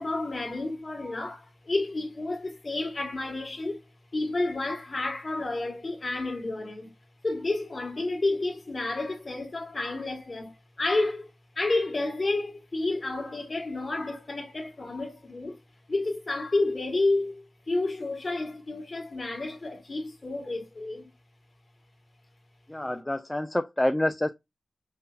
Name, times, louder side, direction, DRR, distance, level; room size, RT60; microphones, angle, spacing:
voice 1, 0.0-3.8 4.1-6.9 7.2-11.3 11.5-15.6 15.9-21.1, left 2 dB, 35° left, 1.6 m, -30 dB
voice 2, 22.7-24.3, left 1 dB, 15° left, 0.3 m, -27 dB
5.5 x 2.8 x 2.4 m
wide cardioid pair, 125°, 0 cm